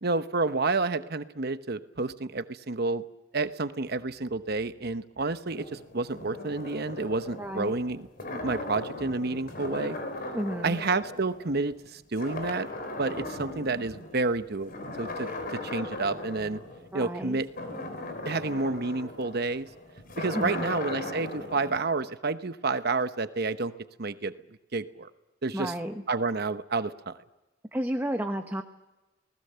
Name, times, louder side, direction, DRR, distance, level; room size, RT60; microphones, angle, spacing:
voice 1, 0.0-3.0 3.3-10.0 10.6-12.7 13.0-14.7 15.0-16.6 16.9-17.5 18.2-19.7 20.2-23.7 24.0-24.3 24.7-25.1 25.4-25.7 26.1-27.1, right 3 dB, 50° right, 11 dB, 1.0 m, -30 dB
sound 1, 5.4-11.9 12.2-14.2 14.6-21.8, left 2 dB, 50° left, 4.0 m, -38 dB
voice 2, 7.4-7.7 10.3-10.8 15.2-15.4 16.9-17.4 20.3-20.7 25.5-26.0 27.7-28.6, right 1 dB, 10° right, 5 dB, 1.1 m, -32 dB
29.5 x 19.5 x 6.9 m, 1.0 s
head